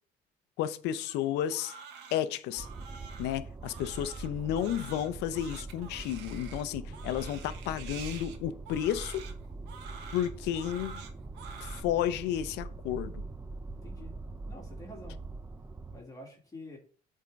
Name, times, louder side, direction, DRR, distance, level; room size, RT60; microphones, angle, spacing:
voice 1, 0.6-1.7 2.1-2.7 3.2-9.2 10.1-11.0 11.6-13.2, left 11 dB, 90° left, 0.7 m, -32 dB
Crying sobbing, 1.0-11.8, right 6 dB, 85° right, 1.2 m, -48 dB
sound 1, 2.6-16.0, right 3 dB, 15° right, 0.5 m, -43 dB
voice 2, 6.9-7.2 13.8-14.1 14.5-15.2 15.9-16.8, left 1 dB, 20° left, 2.2 m, -48 dB
8.4 x 3.7 x 5.2 m
cardioid pair, 110°, 17 cm